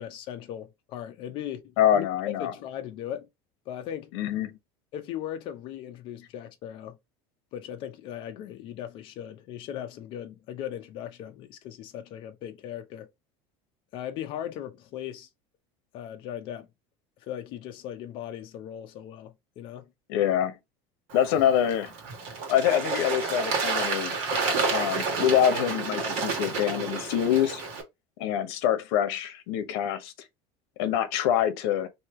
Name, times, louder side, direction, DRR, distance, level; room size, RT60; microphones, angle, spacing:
voice 1, 0.0-2.1 2.4-3.3 3.7-4.2 4.9-7.0 7.5-13.1 13.9-15.3 15.9-16.7 17.2-19.9 24.5-24.6, left 10 dB, 40° left, 0.6 m, -38 dB
voice 2, 1.8-2.5 4.1-4.5 20.1-20.5 21.1-21.9 22.5-24.2 24.7-27.6 28.2-30.1 30.8-31.9, left 10 dB, 70° left, 0.9 m, -25 dB
Bird / Water, 21.1-27.8, right 4 dB, 50° right, 1.5 m, -30 dB
3.2 x 2.8 x 4.2 m
cardioid pair, 175°, 13 cm